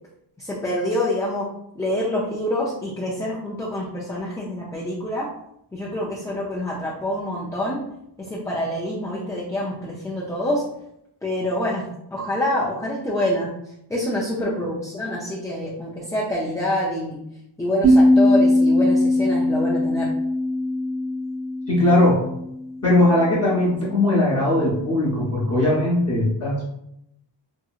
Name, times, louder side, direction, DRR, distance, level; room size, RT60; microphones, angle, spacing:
voice 1, 0.4-1.5 1.8-5.3 5.7-7.8 8.2-10.6 11.2-11.8 12.1-13.5 13.9-17.2 17.6-20.1, left 1 dB, 10° left, -5 dB, 0.3 m, -26 dB
sound 1, 17.8-23.0, left 1 dB, 10° right, 0.7 m, -20 dB
voice 2, 21.7-22.2 22.8-26.6, left 1 dB, 35° left, -7 dB, 0.8 m, -19 dB
2.8 x 2.6 x 2.3 m, 0.79 s
wide cardioid pair, 125°, 46 cm